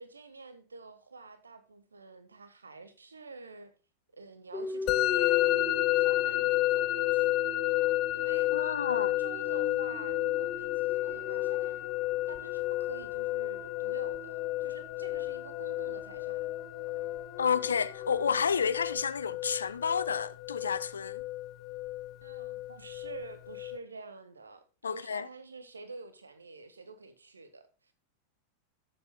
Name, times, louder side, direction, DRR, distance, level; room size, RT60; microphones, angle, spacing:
voice 1, 0.0-3.7 4.1-7.4 7.7-11.8 12.3-16.5 22.2-27.9, right 3 dB, 75° right, 1.5 m, -48 dB
sound 1, 4.5-18.7, left 2 dB, 15° left, 1.6 m, -43 dB
Musical instrument, 4.9-23.8, left 17 dB, 40° left, 0.7 m, -31 dB
voice 2, 8.5-9.1 17.4-21.2 24.8-25.3, left 6 dB, 70° left, 0.6 m, -30 dB
13.5 x 7.9 x 2.2 m
figure-of-eight pair, 90°, 0 cm